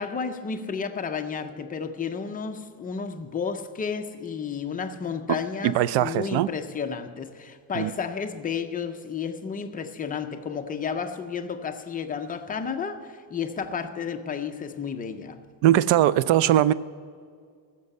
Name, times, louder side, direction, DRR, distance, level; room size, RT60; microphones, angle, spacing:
voice 1, 0.0-15.4, left 6 dB, 20° left, 0.3 m, -32 dB
voice 2, 5.6-6.5 7.7-7.9 15.6-16.7, right 12 dB, 70° right, 0.5 m, -20 dB
15.0 x 6.6 x 8.0 m
cardioid pair, 175°, 48 cm